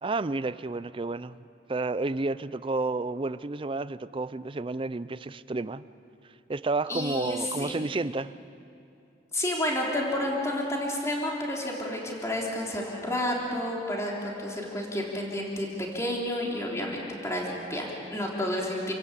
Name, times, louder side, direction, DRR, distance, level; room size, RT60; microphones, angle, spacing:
voice 1, 0.0-1.4 1.7-5.8 6.5-8.3, right 3 dB, 30° right, 15 dB, 0.5 m, -31 dB
voice 2, 6.9-7.8 9.3-15.7 15.9-18.9, left 1 dB, 15° left, -2 dB, 3.4 m, -30 dB
28.5 x 16.5 x 8.3 m, 2.7 s
head